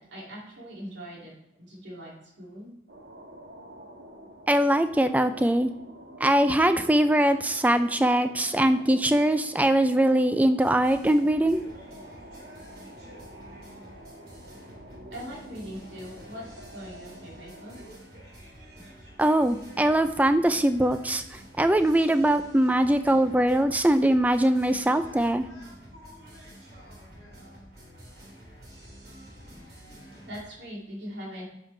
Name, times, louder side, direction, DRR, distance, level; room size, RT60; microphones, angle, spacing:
voice 1, 0.0-1.3 1.6-2.7 15.0-16.4 16.7-17.8 30.2-31.4, equal, 70° right, -4 dB, 2.6 m, -41 dB
sound 1, 2.9-17.9, equal, 90° right, 1.5 m, -48 dB
voice 2, 4.5-5.7 6.2-11.6 19.2-25.5, right 1 dB, 10° right, 10 dB, 0.4 m, -22 dB
sound 2, 10.6-30.4, equal, 55° right, 3.1 m, -48 dB
9.7 x 5.8 x 3.3 m, 0.85 s
head